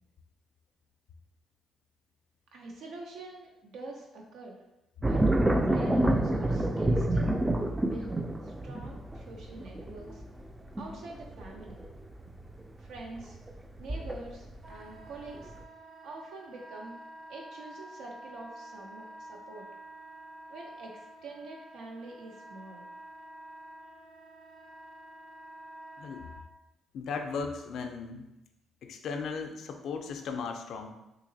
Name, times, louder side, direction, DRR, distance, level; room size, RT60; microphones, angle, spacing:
voice 1, 2.5-4.6 5.0-7.5 7.8-8.1 8.4-10.2 10.8-11.8 12.8-13.4 13.8-15.5 16.0-16.9 17.3-19.7 20.5-22.9, right 2 dB, 85° right, 0 dB, 0.4 m, -45 dB
sound 1, 5.0-14.7 15.1-15.6, right 1 dB, 15° right, 0.3 m, -28 dB
Wind instrument woodwind instrument, 14.6-26.4, right 1 dB, 50° right, 0.8 m, -49 dB
voice 2, 26.9-28.2 28.8-30.9, left 5 dB, 70° left, 5 dB, 0.4 m, -36 dB
3.8 x 2.8 x 2.6 m, 0.93 s
cardioid pair, 90°, 0 cm